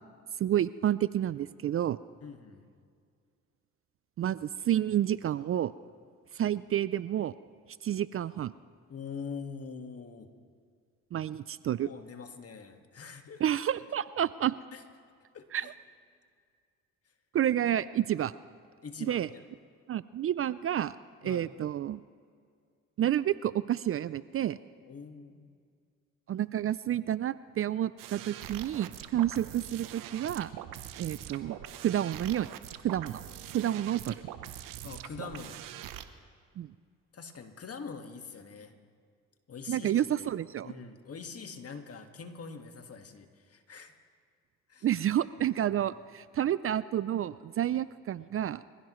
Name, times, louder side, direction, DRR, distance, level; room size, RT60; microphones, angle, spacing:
voice 1, 0.4-2.0 4.2-5.7 6.3-7.3 7.8-8.5 11.1-11.9 13.4-14.6 15.5-15.7 17.3-18.3 19.0-19.3 19.9-21.0 21.2-22.0 23.0-24.6 26.3-30.5 31.0-32.5 32.8-33.2 33.5-34.2 36.6-36.7 39.7-40.7 44.8-48.6, right 11 dB, 45° right, 17 dB, 0.4 m, -30 dB
voice 2, 2.2-2.7 8.9-10.3 11.4-11.5 11.8-13.4 14.7-14.8 15.3-15.7 18.8-19.4 21.2-21.5 24.9-25.5 34.8-35.6 37.1-38.7 39.5-40.3 40.6-43.9 44.7-44.9 45.7-45.9, left 5 dB, 45° left, 6 dB, 1.8 m, -44 dB
sound 1, 28.0-36.0, right 11 dB, 80° right, 0.9 m, -43 dB
24.5 x 15.5 x 3.1 m, 2.1 s
supercardioid pair, 60°, 33 cm